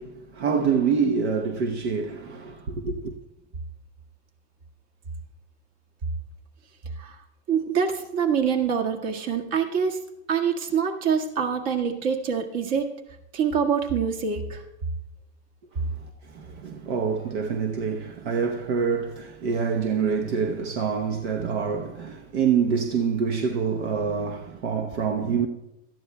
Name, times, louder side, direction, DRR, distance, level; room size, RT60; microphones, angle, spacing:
voice 1, 0.0-3.1 15.7-25.5, right 6 dB, 80° right, 1.0 m, -26 dB
voice 2, 7.5-10.0 10.3-12.9 13.3-14.6, right 7 dB, 55° right, 1.8 m, -25 dB
18.5 x 13.0 x 2.3 m
supercardioid pair, 130°, 33 cm